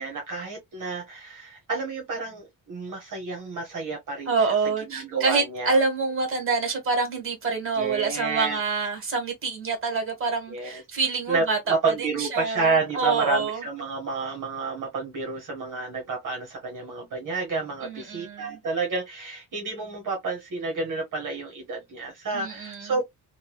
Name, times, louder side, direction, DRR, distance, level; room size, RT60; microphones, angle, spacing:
voice 1, 0.0-4.3 4.9-5.8 7.8-8.6 10.5-10.8 11.3-23.0, right 4 dB, 50° right, 1.1 m, -30 dB
voice 2, 4.3-13.6 17.8-18.6 22.3-22.9, right 4 dB, 30° right, 1.4 m, -27 dB
3.3 x 2.3 x 2.3 m
wide cardioid pair, 150°, 40 cm